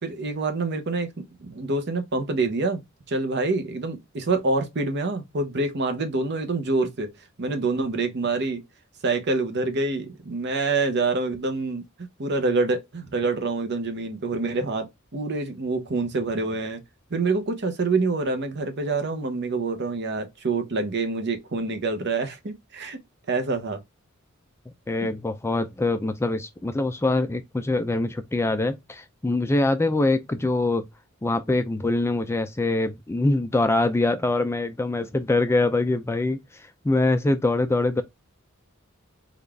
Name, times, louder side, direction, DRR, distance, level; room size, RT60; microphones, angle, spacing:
voice 1, 0.0-2.8 3.1-7.1 7.4-8.6 9.0-14.9 15.1-16.8 17.1-23.0 23.3-23.8, right 3 dB, 55° right, 0.8 m, -26 dB
voice 2, 24.9-30.9 31.2-38.0, left 2 dB, 10° left, 0.4 m, -24 dB
3.9 x 2.4 x 3.3 m
head